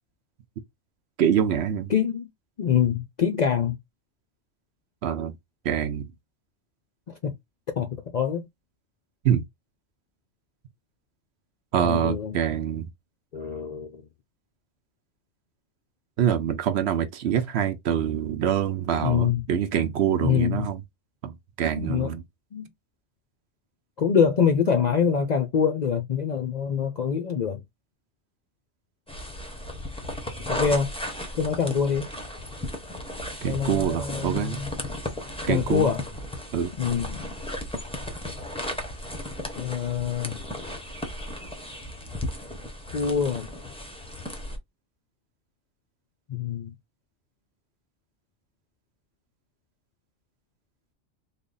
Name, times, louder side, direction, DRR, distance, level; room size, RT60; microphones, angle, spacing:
voice 1, 1.2-1.9 5.0-5.3 5.6-6.1 9.2-9.4 11.7-12.9 16.2-20.8 21.2-22.2 33.4-34.6 35.5-35.9 36.5-36.7, right 9 dB, 70° right, 0.8 m, -25 dB
voice 2, 1.9-2.3 2.6-3.8 7.1-7.3 7.8-8.5 11.8-12.4 13.3-14.0 19.0-19.4 20.2-20.7 21.8-22.1 22.5-22.7 24.0-27.6 30.5-30.9 31.4-32.1 33.4-34.8 35.5-36.0 36.8-37.4 39.6-40.4 42.9-43.5 46.3-46.7, left 7 dB, 55° left, 0.5 m, -25 dB
sound 1, 29.1-44.6, left 1 dB, 5° left, 0.5 m, -35 dB
3.3 x 2.2 x 3.8 m
omnidirectional pair, 1.2 m